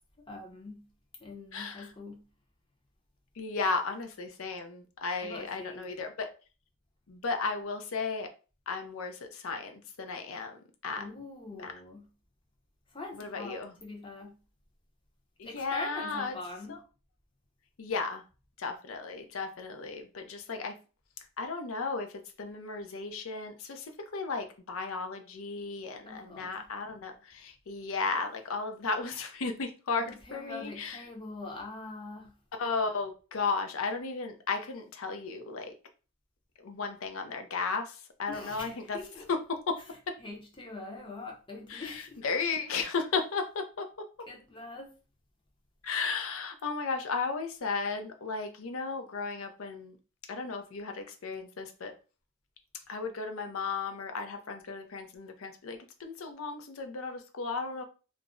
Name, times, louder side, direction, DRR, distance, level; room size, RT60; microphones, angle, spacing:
voice 1, 0.3-0.9 1.2-2.3 5.2-5.9 11.0-12.1 12.9-14.4 15.4-16.8 26.0-26.7 30.0-32.4 38.3-39.3 40.2-42.2 44.3-45.0, left 2 dB, 20° left, 0.6 m, -43 dB
voice 2, 1.5-1.9 3.4-6.3 7.1-8.3 8.7-11.0 11.5-11.7 13.2-13.7 15.4-16.4 16.7-16.8 17.8-18.2 18.6-20.7 21.4-31.0 32.6-35.7 36.6-39.0 39.3-39.8 40.1-40.2 41.7-43.9 45.8-50.0 50.3-51.9 52.9-57.8, left 4 dB, 65° left, 0.5 m, -35 dB
2.4 x 2.0 x 3.6 m
head